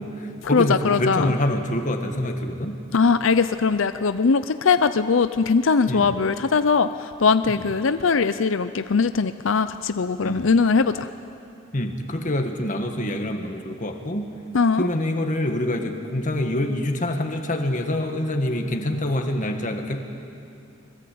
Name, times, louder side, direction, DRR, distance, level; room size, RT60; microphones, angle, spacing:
voice 1, 0.0-2.8 5.9-6.1 7.5-7.6 10.2-10.5 11.7-14.3 14.8-20.0, left 1 dB, 40° left, 4 dB, 1.9 m, -26 dB
voice 2, 0.5-1.3 2.9-11.1 14.5-14.9, left 5 dB, 65° left, 11 dB, 0.6 m, -20 dB
25.0 x 22.0 x 8.6 m, 2.6 s
head